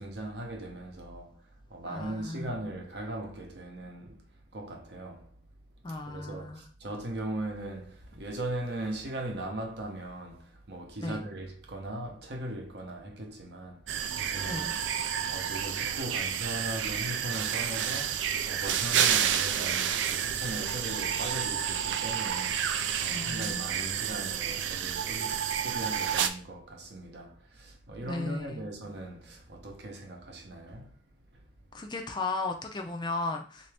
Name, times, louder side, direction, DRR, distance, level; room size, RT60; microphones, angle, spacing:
voice 1, 0.0-1.4 1.7-4.3 4.5-5.3 5.9-31.0 31.3-31.5, right 1 dB, 60° right, 0.8 m, -39 dB
voice 2, 1.9-2.5 5.8-6.7 11.0-11.3 14.4-14.8 23.1-24.0 28.0-28.7 31.7-33.7, left 3 dB, 25° left, 0.4 m, -36 dB
sound 1, 13.9-26.3, right 8 dB, 75° right, 0.3 m, -30 dB
3.4 x 2.6 x 3.3 m
head